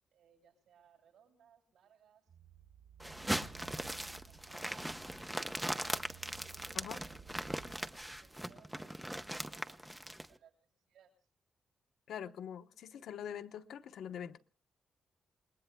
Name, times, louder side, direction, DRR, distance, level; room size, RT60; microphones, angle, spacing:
voice 1, 0.1-2.2 3.0-6.1 6.4-11.3, right 7 dB, 80° right, 7.4 m, -66 dB
sound 1, 2.3-7.7, right 10 dB, 50° right, 4.9 m, -57 dB
sound 2, 3.0-10.3, right 1 dB, 5° right, 0.7 m, -40 dB
voice 2, 12.1-14.4, left 8 dB, 85° left, 0.9 m, -44 dB
28.5 x 21.0 x 2.3 m
wide cardioid pair, 170°, 0 cm